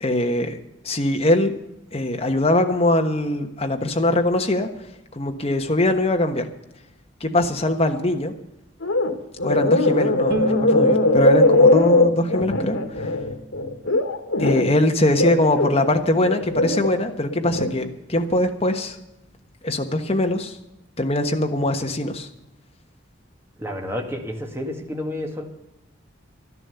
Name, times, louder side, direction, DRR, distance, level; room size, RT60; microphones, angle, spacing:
voice 1, 0.0-1.5 1.9-4.7 5.1-6.5 7.2-8.3 9.4-13.1 14.4-19.0 19.6-20.5 21.0-22.3, left 1 dB, 30° left, 5 dB, 1.2 m, -22 dB
sound 1, 8.8-9.1 9.4-14.7 15.1-16.9 17.3-17.7, left 2 dB, 85° left, 1.6 m, -20 dB
Bowed string instrument, 10.3-13.5, equal, 55° right, 1.5 m, -31 dB
voice 2, 23.6-25.4, left 1 dB, 15° right, 2 dB, 1.9 m, -30 dB
12.0 x 11.0 x 6.9 m, 0.89 s
head